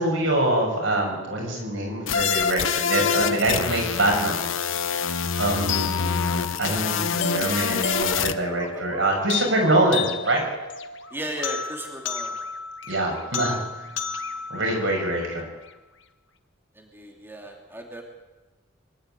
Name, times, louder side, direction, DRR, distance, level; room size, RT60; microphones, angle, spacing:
voice 1, 0.0-4.9 5.4-10.5 12.9-13.9 14.5-15.4, right 1 dB, 75° right, 0 dB, 6.7 m, -25 dB
sound 1, 2.1-8.3, left 7 dB, 90° left, 0.9 m, -26 dB
sound 2, 5.7-15.7, left 5 dB, 70° left, 1.5 m, -33 dB
voice 2, 11.1-12.4 16.7-18.0, right 1 dB, 10° right, 0 dB, 2.9 m, -35 dB
23.5 x 12.5 x 9.3 m, 1.2 s
head